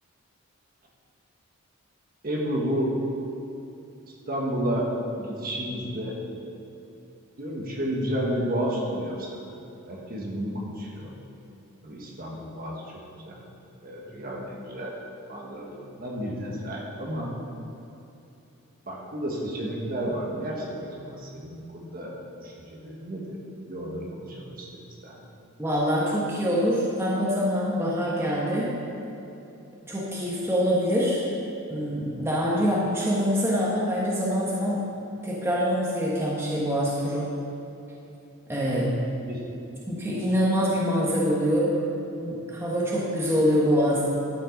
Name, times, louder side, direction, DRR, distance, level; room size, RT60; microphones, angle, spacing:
voice 1, 2.2-2.9 4.3-6.2 7.4-9.4 9.9-11.1 11.8-12.8 13.2-13.4 13.8-14.9 15.3-17.3 18.9-22.1 22.4-23.4 23.7-25.3 39.3-39.4, equal, 40° right, -2 dB, 1.4 m, -31 dB
voice 2, 25.6-28.7 29.9-31.2 31.7-34.8 35.2-37.3 38.5-38.9 39.9-41.7 42.2-44.0, equal, 10° right, -6 dB, 1.1 m, -25 dB
12.0 x 5.3 x 5.2 m, 2.8 s
head